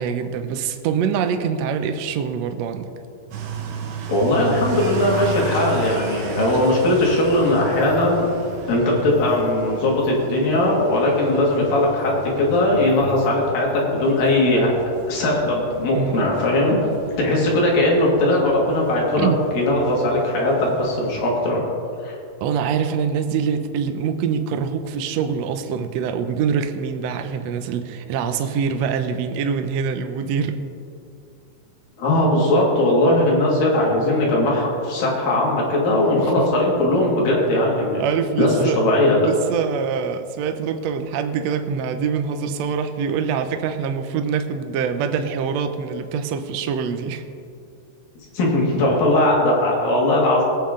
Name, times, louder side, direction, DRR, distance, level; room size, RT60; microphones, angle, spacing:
voice 1, 0.0-2.9 15.9-16.1 19.2-19.4 22.4-30.5 38.0-38.8 39.2-47.2, right 6 dB, 90° right, 7 dB, 1.5 m, -24 dB
sound 1, 3.3-21.3, right 4 dB, 65° right, 2.0 m, -34 dB
voice 2, 4.1-8.3 8.7-14.7 15.1-16.9 17.2-19.3 19.5-21.6 22.0-22.2 32.0-38.0 38.4-39.3 48.3-50.4, left 1 dB, 75° left, -3 dB, 3.9 m, -19 dB
20.0 x 8.6 x 3.8 m, 2.4 s
omnidirectional pair, 4.0 m